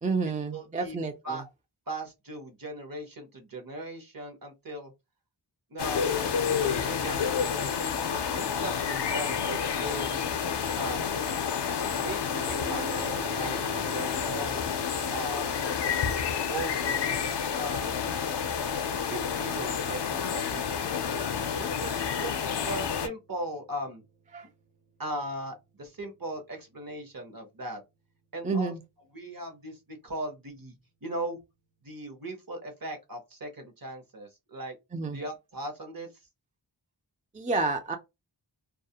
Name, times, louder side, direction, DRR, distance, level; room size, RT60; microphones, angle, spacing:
voice 1, 0.0-1.4 24.3-24.5 28.4-28.8 34.9-35.2 37.3-38.0, right 3 dB, 20° right, 0.4 m, -29 dB
voice 2, 0.5-1.0 1.2-1.4 1.9-4.9 5.7-6.0 6.5-7.8 8.1-10.2 10.8-11.2 11.7-12.2 12.5-14.7 15.1-15.5 16.5-17.2 17.5-18.2 19.1-21.3 21.6-24.0 25.0-27.8 28.3-28.7 29.1-30.8 31.0-31.4 31.8-34.8 35.1-36.1, right 1 dB, 50° right, 0.9 m, -38 dB
sound 1, 5.8-23.1, left 7 dB, 65° left, 0.5 m, -29 dB
sound 2, 12.3-27.2, right 5 dB, 85° right, 0.8 m, -48 dB
2.3 x 2.0 x 2.7 m
wide cardioid pair, 55°, 45 cm